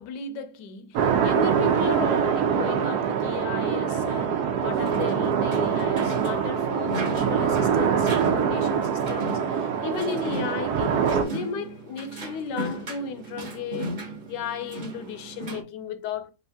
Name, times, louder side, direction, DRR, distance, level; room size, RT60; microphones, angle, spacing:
voice 1, 0.0-13.9 14.3-16.3, left 6 dB, 85° left, 1.2 m, -35 dB
sound 1, 1.0-11.2, right 7 dB, 75° right, 1.2 m, -24 dB
sound 2, 4.7-15.6, right 2 dB, 35° right, 0.8 m, -37 dB
3.5 x 2.7 x 3.4 m
omnidirectional pair, 1.8 m